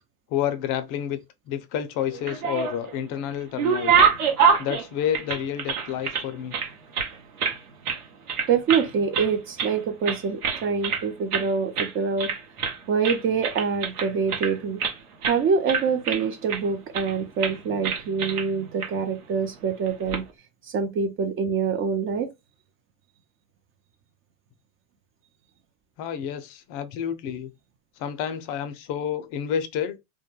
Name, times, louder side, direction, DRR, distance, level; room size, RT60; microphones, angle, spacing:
voice 1, 0.3-1.2 1.5-4.0 4.6-6.5 26.0-27.5 28.0-30.0, left 9 dB, 50° left, 0.5 m, -29 dB
sound 1, 2.1-2.9 3.3-6.2 6.5-7.6 7.8-8.0 8.3-8.9 9.1-9.8 10.0-11.0 11.3-11.5 11.7-11.9 12.2-12.8 13.0-14.9 15.2-15.4 15.7-16.6 16.9-17.1 17.4-17.6 17.8-18.5 18.8-18.9 19.9-20.2, right 6 dB, 90° right, 0.9 m, -25 dB
voice 2, 8.5-12.3 12.9-14.8 15.2-20.2 20.7-22.3, right 5 dB, 30° right, 0.5 m, -25 dB
2.2 x 2.1 x 3.0 m
hypercardioid pair, 95°, 44 cm